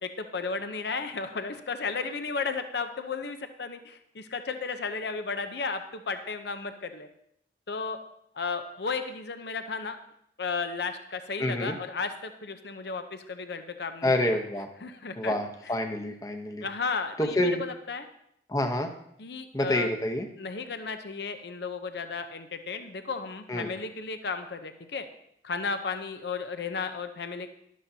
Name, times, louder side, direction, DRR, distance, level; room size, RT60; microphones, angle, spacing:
voice 1, 0.0-7.1 7.7-8.0 8.3-10.0 10.4-14.4 14.8-15.4 16.6-18.1 19.2-19.9 20.4-25.1 25.4-27.5, left 4 dB, 60° left, 8 dB, 0.7 m, -34 dB
voice 2, 11.4-11.8 14.0-14.7 15.2-16.7 17.2-17.6 18.5-18.9 19.5-20.3 23.5-23.7, left 1 dB, 20° left, 5 dB, 0.9 m, -27 dB
12.5 x 11.5 x 2.8 m, 0.74 s
head